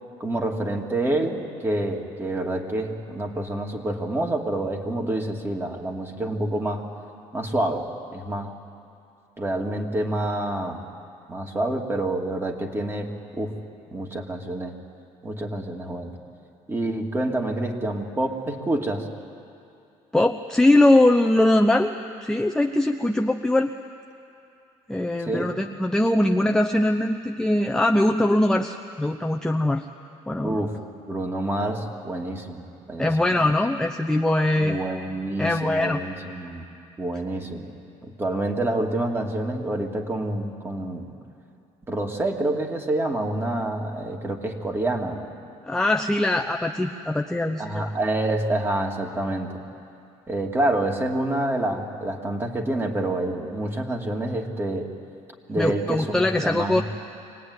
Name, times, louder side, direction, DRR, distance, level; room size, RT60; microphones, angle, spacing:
voice 1, 0.2-6.9 7.3-7.9 8.1-8.5 9.4-10.8 11.3-13.1 13.4-13.5 13.9-14.7 15.2-16.2 16.7-19.1 25.2-25.5 30.4-30.7 31.1-33.2 34.6-36.6 37.0-37.7 38.0-41.1 41.9-45.3 47.6-49.5 50.3-54.9 55.5-56.8, right 1 dB, 20° right, 2 dB, 2.7 m, -27 dB
voice 2, 20.1-21.9 22.2-23.7 24.9-29.9 30.3-30.6 33.0-34.8 35.4-36.0 45.7-47.9 55.6-56.8, left 1 dB, 5° left, 3 dB, 0.8 m, -21 dB
25.0 x 18.0 x 9.7 m, 2.6 s
cardioid pair, 100°, 13 cm